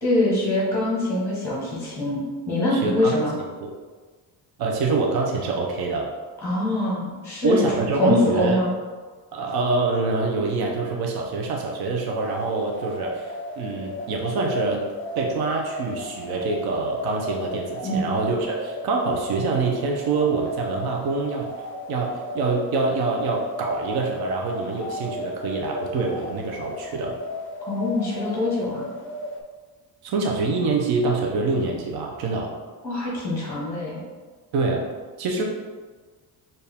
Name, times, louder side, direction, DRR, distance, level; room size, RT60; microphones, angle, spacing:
voice 1, 0.0-3.3 6.4-7.6 8.0-8.7 17.8-18.1 27.7-28.9 32.8-34.0, left 1 dB, 5° left, -5 dB, 1.1 m, -23 dB
voice 2, 2.7-3.1 3.6-3.7 4.6-6.1 7.4-8.6 9.3-14.8 15.2-21.5 21.9-27.2 30.0-32.5 34.5-34.8 35.2-35.4, right 3 dB, 75° right, 0 dB, 0.7 m, -25 dB
sound 1, 12.1-29.4, left 1 dB, 35° left, 0.4 m, -35 dB
4.5 x 2.6 x 3.5 m, 1.4 s
cardioid pair, 175°, 37 cm